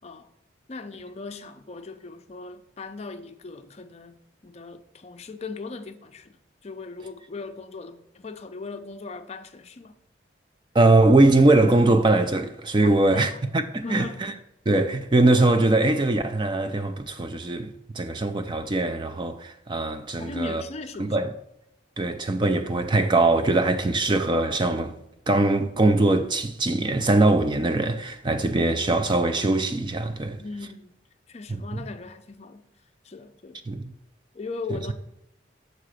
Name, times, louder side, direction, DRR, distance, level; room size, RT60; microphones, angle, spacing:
voice 1, 0.7-4.2 4.4-6.4 6.6-9.9 12.8-13.4 13.8-14.2 20.2-21.2 30.4-31.0 31.3-32.7 33.0-33.6 34.3-34.9, left 3 dB, 35° left, 0.5 m, -38 dB
voice 2, 10.7-14.3 14.7-20.6 21.0-21.3 22.0-30.4 31.5-31.8 33.7-33.9 34.7-34.9, right 2 dB, 25° right, 0.4 m, -22 dB
6.6 x 3.8 x 6.4 m
head